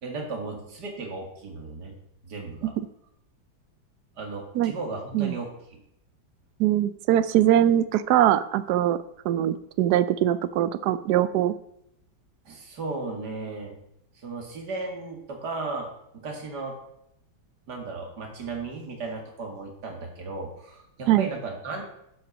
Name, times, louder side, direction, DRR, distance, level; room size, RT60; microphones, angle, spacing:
voice 1, 0.0-2.0 2.2-2.7 4.2-5.8 12.4-13.7 14.1-16.8 17.7-21.8, right 3 dB, 55° right, 2 dB, 2.5 m, -35 dB
voice 2, 6.6-9.0 9.2-11.5 21.1-21.3, right 12 dB, 70° right, 14 dB, 1.0 m, -22 dB
11.5 x 5.6 x 5.2 m, 0.80 s
omnidirectional pair, 2.2 m